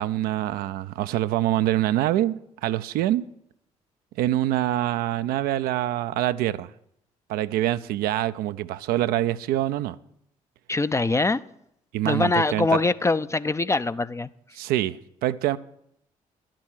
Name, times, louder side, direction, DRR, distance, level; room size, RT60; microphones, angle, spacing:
voice 1, 0.0-3.2 4.2-6.7 7.3-10.0 11.9-12.8 14.5-15.6, right 13 dB, 60° right, 0.5 m, -25 dB
voice 2, 10.7-11.4 12.0-14.3, left 3 dB, 15° left, 0.5 m, -23 dB
11.5 x 7.5 x 9.0 m
figure-of-eight pair, 45°, 17 cm